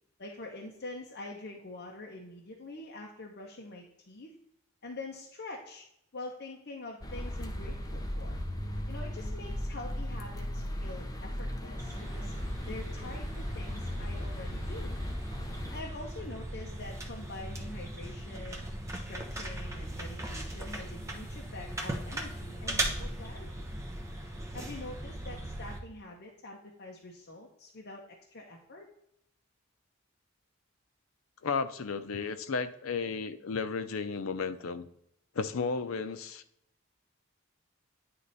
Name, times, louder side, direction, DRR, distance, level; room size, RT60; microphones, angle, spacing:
voice 1, 0.2-4.3 4.8-5.8 6.1-8.4 8.9-12.3 12.6-14.9 15.7-18.6 18.9-23.7 24.5-28.9, left 2 dB, 50° left, -1 dB, 0.8 m, -45 dB
sound 1, 7.0-15.8, left 1 dB, 20° left, 0.6 m, -37 dB
sound 2, 11.8-25.8, right 1 dB, 15° right, 0.8 m, -39 dB
voice 2, 31.4-34.9 35.3-36.4, left 5 dB, 80° left, 11 dB, 0.5 m, -33 dB
9.4 x 3.2 x 3.9 m, 0.77 s
head